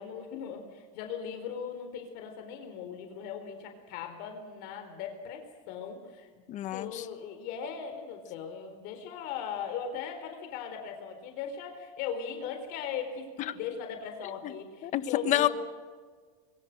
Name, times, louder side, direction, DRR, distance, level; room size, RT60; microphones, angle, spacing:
voice 1, 0.0-6.4 6.7-15.5, left 7 dB, 60° left, 5 dB, 4.3 m, -39 dB
voice 2, 6.5-7.1 13.5-13.6 14.4-14.5 14.8-15.5, left 13 dB, 40° left, 12 dB, 1.4 m, -28 dB
25.0 x 23.0 x 6.7 m, 1.5 s
supercardioid pair, 140°, 19 cm